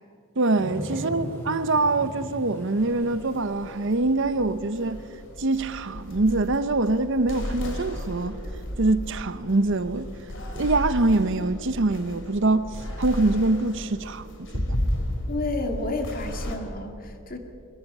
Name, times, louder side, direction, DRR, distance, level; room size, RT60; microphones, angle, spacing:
voice 1, 0.4-5.0 5.4-8.4 8.8-10.1 10.5-14.8, right 2 dB, 55° right, 0.8 m, -24 dB
sound 1, 0.6-4.6 5.1-5.2, right 1 dB, 10° left, 6.5 m, -38 dB
sound 2, 2.8-16.6, equal, 55° left, 2.8 m, -34 dB
voice 2, 15.3-17.4, left 2 dB, 40° left, 2.1 m, -31 dB
23.0 x 21.5 x 5.5 m
head